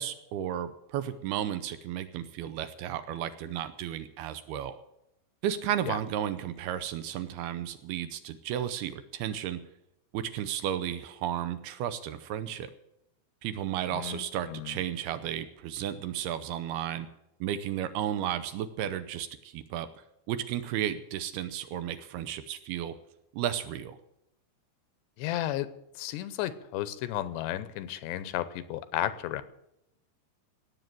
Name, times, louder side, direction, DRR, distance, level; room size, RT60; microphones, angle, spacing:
voice 1, 0.0-4.8 5.4-9.6 10.1-12.7 13.4-17.1 17.4-19.9 20.3-23.0 23.3-24.0, right 10 dB, 80° right, 11 dB, 2.5 m, -33 dB
voice 2, 13.9-14.8 25.2-25.7 26.0-29.4, left 13 dB, 85° left, 14 dB, 3.0 m, -33 dB
18.0 x 7.8 x 7.7 m, 0.83 s
omnidirectional pair, 4.9 m